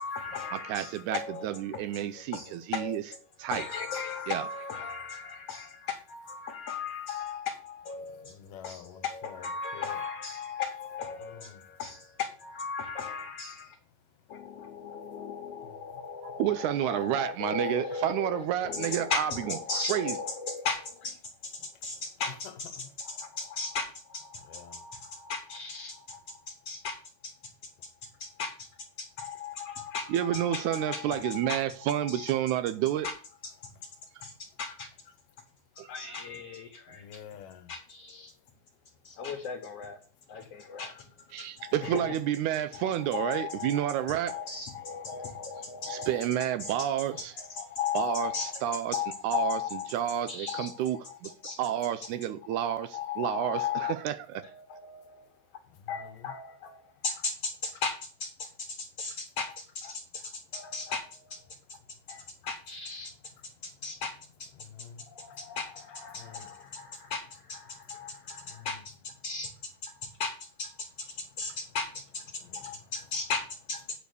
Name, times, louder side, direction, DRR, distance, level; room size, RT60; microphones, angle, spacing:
voice 1, 0.0-3.2 3.5-13.8 14.3-22.7 23.0-27.0 27.2-27.3 28.2-28.7 29.0-31.6 32.0-32.3 33.0-33.1 33.4-33.9 34.2-34.9 35.7-37.1 37.7-38.3 39.0-40.0 40.3-42.2 42.7-49.9 50.3-51.6 52.9-53.9 54.4-55.3 55.9-61.8 62.1-63.1 63.6-64.1 64.4-64.5 65.1-69.5 69.8-71.1 71.4-74.0, left 5 dB, 60° left, 1.7 m, -37 dB
voice 2, 0.5-3.0 3.4-3.6 4.3-4.4 16.2-19.6 19.9-20.2 30.1-33.1 34.1-34.2 35.8-36.1 41.3-44.4 45.9-47.3 47.9-48.3 48.6-49.0 49.2-49.6 49.9-51.3 51.6-54.4, right 11 dB, 80° right, 1.8 m, -30 dB
voice 3, 8.0-10.0 11.2-11.8 14.0-15.2 15.6-16.4 21.6-21.9 22.3-22.9 24.4-24.9 28.1-28.2 34.1-34.3 36.9-37.7 40.3-40.4 40.7-40.8 55.6-56.3 60.4-60.5 61.8-62.5 63.5-63.8 64.6-65.6 66.1-67.1 67.7-68.8 70.0-70.1 71.1-71.6 72.3-72.9, left 8 dB, 80° left, 2.6 m, -51 dB
9.0 x 5.0 x 6.7 m
omnidirectional pair, 3.8 m